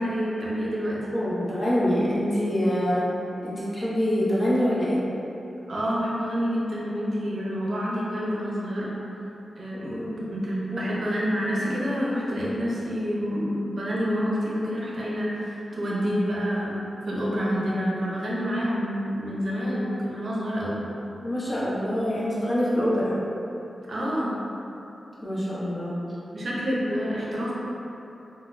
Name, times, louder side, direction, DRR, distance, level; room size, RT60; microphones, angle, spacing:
voice 1, 0.0-1.0 5.7-8.9 9.6-16.7 17.1-20.8 23.9-24.3 26.3-27.5, equal, 60° right, -5 dB, 0.6 m, -28 dB
voice 2, 1.1-3.0 3.4-5.0 9.7-10.3 10.7-10.9 21.2-23.2 25.2-26.0, equal, 25° left, -8 dB, 0.8 m, -25 dB
3.9 x 2.1 x 2.5 m, 2.9 s
wide cardioid pair, 85°, 0 cm